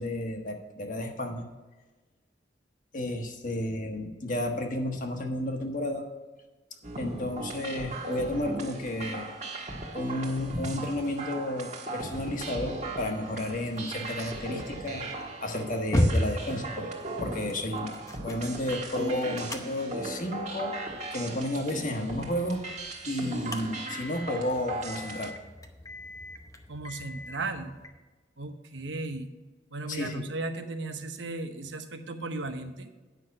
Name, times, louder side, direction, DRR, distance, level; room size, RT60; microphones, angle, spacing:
voice 1, 0.0-1.5 2.9-6.1 7.0-9.3 9.9-15.0 15.4-16.9 17.2-17.9 18.2-20.8 21.1-25.3 29.9-30.3, left 1 dB, 45° left, 3 dB, 1.3 m, -32 dB
sound 1, 6.8-25.3, right 2 dB, 40° right, 1.4 m, -37 dB
sound 2, 13.2-27.9, left 1 dB, 20° left, 0.7 m, -36 dB
voice 2, 26.7-27.8 28.4-29.3 29.7-32.9, right 2 dB, 90° right, 7 dB, 1.0 m, -36 dB
9.5 x 6.0 x 5.3 m, 1.2 s
head